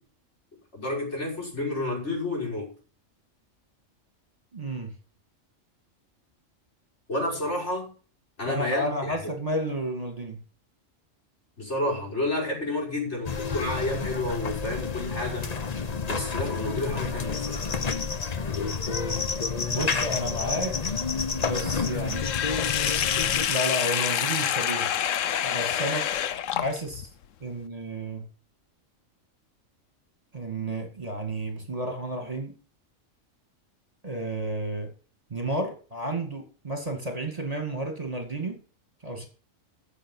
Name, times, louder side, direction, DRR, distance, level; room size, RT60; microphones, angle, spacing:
voice 1, 0.7-2.7 7.1-7.9 8.4-9.2 11.6-15.6 16.0-17.7, left 1 dB, 60° left, 6.4 m, -30 dB
voice 2, 4.5-4.9 8.5-10.4 19.7-20.9 21.3-22.3 23.5-24.9 25.4-26.1 26.5-27.1 27.4-28.3 30.3-32.5 34.0-34.9 35.3-38.6 39.0-39.3, right 1 dB, 30° right, 2.4 m, -31 dB
sound 1, 13.2-23.5, left 5 dB, 35° left, 0.9 m, -29 dB
Sink (filling or washing), 22.1-27.0, left 10 dB, 80° left, 1.1 m, -27 dB
14.5 x 7.6 x 5.6 m
omnidirectional pair, 1.3 m